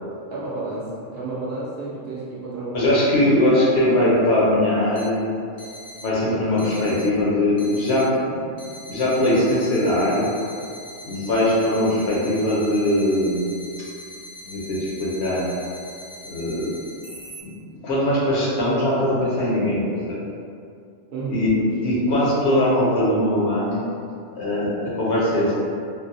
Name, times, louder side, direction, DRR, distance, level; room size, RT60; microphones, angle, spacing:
voice 1, 0.3-3.4 21.1-22.0, right 2 dB, 60° right, -7 dB, 0.8 m, -31 dB
voice 2, 2.7-5.2 6.0-8.6 8.9-10.3 11.0-13.4 14.4-15.5 16.2-16.8 17.4-17.5 17.8-20.2 21.3-21.5 21.8-23.8 24.3-25.5, left 1 dB, 65° left, -6 dB, 0.9 m, -21 dB
sound 1, 4.9-5.1 5.6-6.1 6.6-7.1 7.6-8.1 8.6-17.4, left 1 dB, 35° left, 0.5 m, -41 dB
3.8 x 2.0 x 2.6 m, 2.4 s
omnidirectional pair, 1.3 m